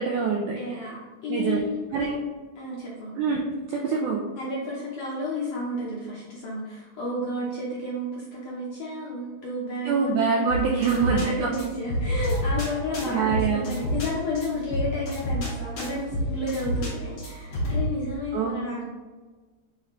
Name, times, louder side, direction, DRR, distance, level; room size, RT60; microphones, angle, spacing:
voice 1, 0.0-0.6 1.3-1.6 1.9-2.2 3.2-4.2 9.9-11.5 13.0-13.6 18.3-18.6, right 5 dB, 85° right, -1 dB, 1.7 m, -25 dB
voice 2, 0.5-2.2 2.5-3.1 4.4-10.2 10.8-18.8, left 1 dB, 70° left, -6 dB, 1.5 m, -32 dB
sound 1, 10.5-17.9, equal, 45° left, 1.5 m, -30 dB
8.5 x 4.0 x 3.1 m, 1.3 s
omnidirectional pair, 4.2 m